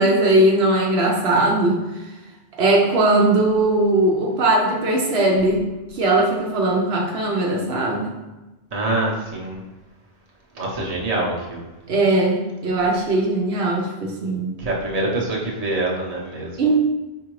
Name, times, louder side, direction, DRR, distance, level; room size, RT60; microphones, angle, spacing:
voice 1, 0.0-1.8 2.6-5.6 5.9-8.2 11.9-14.6 16.6-16.8, right 2 dB, 75° right, -1 dB, 0.9 m, -19 dB
voice 2, 8.7-9.6 10.5-11.6 14.6-16.7, right 2 dB, 40° right, -3 dB, 0.9 m, -25 dB
4.8 x 3.6 x 3.0 m, 1.1 s
omnidirectional pair, 1.1 m